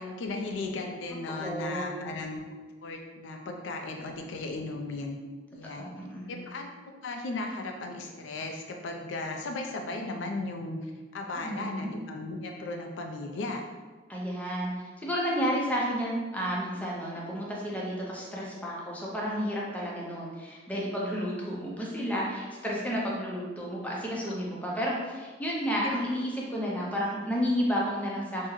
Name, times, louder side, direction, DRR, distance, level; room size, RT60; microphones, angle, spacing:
voice 1, 0.0-2.4 2.8-5.2 5.5-5.9 6.3-13.6 24.2-24.3 25.8-25.9, left 2 dB, 75° left, 3 dB, 0.4 m, -36 dB
voice 2, 1.4-2.1 5.8-6.4 11.4-11.9 14.1-14.7 15.0-28.5, equal, 10° left, -4 dB, 0.5 m, -31 dB
3.5 x 2.1 x 3.0 m, 1.3 s
head